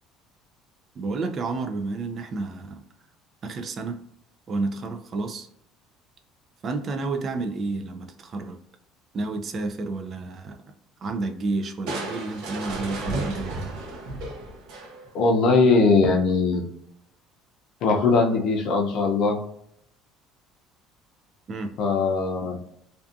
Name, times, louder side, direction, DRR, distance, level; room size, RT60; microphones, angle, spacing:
voice 1, 1.0-2.8 3.4-4.0 4.5-5.5 6.6-8.6 9.1-10.6 11.0-13.7 21.5-21.7, right 3 dB, 35° right, 6 dB, 0.3 m, -30 dB
Crushing, 11.9-15.2, right 2 dB, 70° right, 0.6 m, -33 dB
voice 2, 15.1-16.7 17.8-19.4 21.8-22.6, left 4 dB, 55° left, 2 dB, 0.6 m, -20 dB
2.6 x 2.3 x 2.4 m, 0.72 s
cardioid pair, 145°, 0 cm